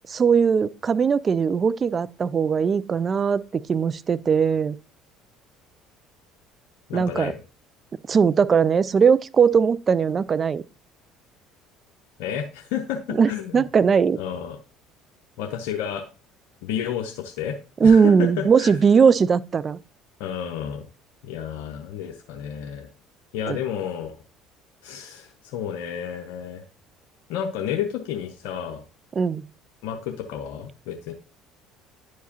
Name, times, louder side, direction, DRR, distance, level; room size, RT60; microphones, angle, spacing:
voice 1, 0.1-4.8 6.9-7.3 8.1-10.6 13.2-14.2 17.8-19.8 23.5-23.6 29.2-29.4, right 6 dB, 35° right, 0.3 m, -19 dB
voice 2, 6.9-7.4 12.2-13.6 14.2-14.6 15.4-16.1 16.6-18.8 20.2-20.9 21.2-22.9 23.3-24.1 24.8-26.6 27.3-28.8 29.8-31.1, left 9 dB, 80° left, 0.7 m, -31 dB
10.0 x 4.7 x 2.8 m
supercardioid pair, 80°, 0 cm